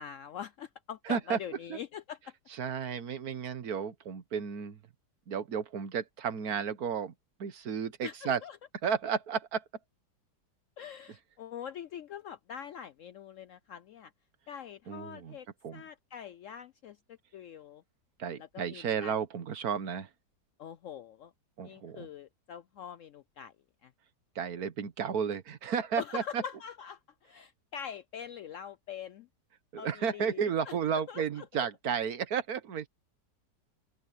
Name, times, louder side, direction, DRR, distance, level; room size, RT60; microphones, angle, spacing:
voice 1, 0.0-2.2 8.0-8.6 10.8-14.1 14.5-15.5 15.7-17.0 17.3-17.8 18.4-19.1 20.6-21.3 21.6-23.5 23.8-23.9 26.0-29.3 29.8-30.7 31.1-31.4, left 8 dB, 80° left, 0.7 m, -43 dB
voice 2, 1.0-1.4 1.7-1.8 2.5-4.8 5.3-7.1 7.4-8.4 8.8-9.6 14.9-15.4 15.6-15.8 18.2-20.1 21.6-22.1 24.3-26.4 29.7-32.9, right 7 dB, 60° right, 1.6 m, -33 dB
open air
omnidirectional pair, 1.9 m